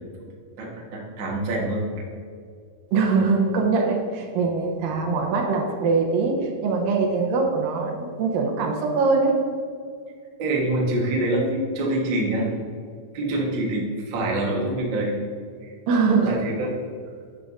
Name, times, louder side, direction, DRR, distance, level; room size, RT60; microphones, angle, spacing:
voice 1, 0.6-1.8 10.4-12.5 13.1-15.2 15.6-15.7 16.2-16.7, right 1 dB, 60° right, -2 dB, 1.2 m, -25 dB
voice 2, 2.9-9.5 15.9-16.3, right 4 dB, 80° right, 2 dB, 2.5 m, -22 dB
11.0 x 6.7 x 2.5 m, 2.2 s
omnidirectional pair, 4.1 m